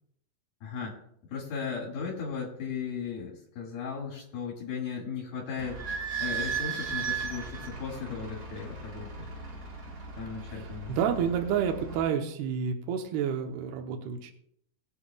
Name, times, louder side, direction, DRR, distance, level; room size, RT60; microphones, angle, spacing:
voice 1, 0.6-1.0 1.3-5.8 6.2-9.3 10.2-11.0, left 6 dB, 65° left, -4 dB, 3.8 m, -36 dB
Idling / Squeak, 5.6-12.0, right 5 dB, 45° right, 1.3 m, -36 dB
voice 2, 10.5-14.3, right 7 dB, 80° right, 3 dB, 2.9 m, -30 dB
21.0 x 8.1 x 2.3 m, 0.72 s
omnidirectional pair, 4.6 m